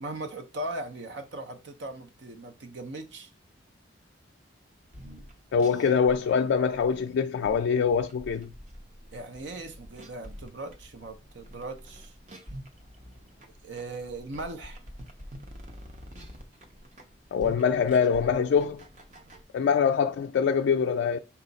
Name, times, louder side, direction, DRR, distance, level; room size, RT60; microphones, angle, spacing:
voice 1, 0.0-3.3 9.1-12.1 13.6-14.8, right 2 dB, 75° right, 0.7 m, -39 dB
sound 1, 4.8-19.4, equal, 40° right, 0.7 m, -47 dB
voice 2, 5.5-8.5 17.3-18.8 19.5-21.2, left 6 dB, 75° left, 0.3 m, -24 dB
5.6 x 2.4 x 3.9 m
head